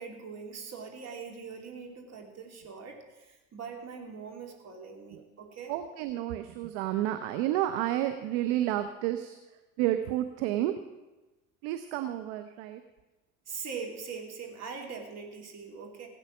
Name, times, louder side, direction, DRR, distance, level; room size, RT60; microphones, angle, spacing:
voice 1, 0.0-5.7 13.5-16.1, right 5 dB, 40° right, 2 dB, 2.9 m, -42 dB
voice 2, 5.7-9.4 9.8-10.7 11.6-12.8, right 13 dB, 60° right, 9 dB, 0.9 m, -30 dB
17.0 x 8.3 x 6.0 m, 1.1 s
figure-of-eight pair, 60°, 41 cm